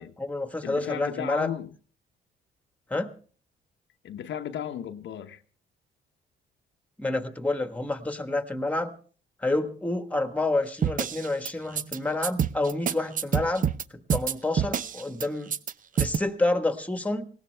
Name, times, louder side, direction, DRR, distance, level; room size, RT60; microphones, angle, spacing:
voice 1, 0.0-1.5 2.9-3.1 7.0-8.9 9.4-15.5 16.0-17.2, left 2 dB, 5° left, 1.4 m, -29 dB
voice 2, 0.6-1.7 4.0-5.4, left 10 dB, 70° left, 1.0 m, -35 dB
sound 1, 10.8-11.5 11.8-12.0 12.2-13.8 14.1-15.3 15.5-15.7 16.0-16.2, right 8 dB, 40° right, 0.6 m, -26 dB
19.0 x 17.5 x 3.4 m
cardioid pair, 90°, 20 cm